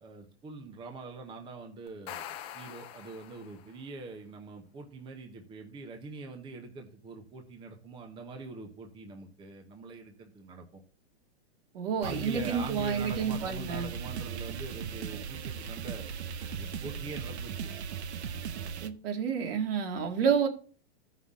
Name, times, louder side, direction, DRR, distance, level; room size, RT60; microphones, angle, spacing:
voice 1, 0.0-10.8 12.0-16.1 16.4-17.7, right 3 dB, 15° right, 1.0 m, -43 dB
sound 1, 1.9-3.8, left 10 dB, 15° left, 0.4 m, -44 dB
voice 2, 11.7-13.9 18.8-20.5, right 6 dB, 60° right, 2.1 m, -29 dB
sound 2, 12.0-18.9, right 7 dB, 85° right, 1.0 m, -38 dB
13.0 x 5.7 x 3.7 m
hypercardioid pair, 150°, 32 cm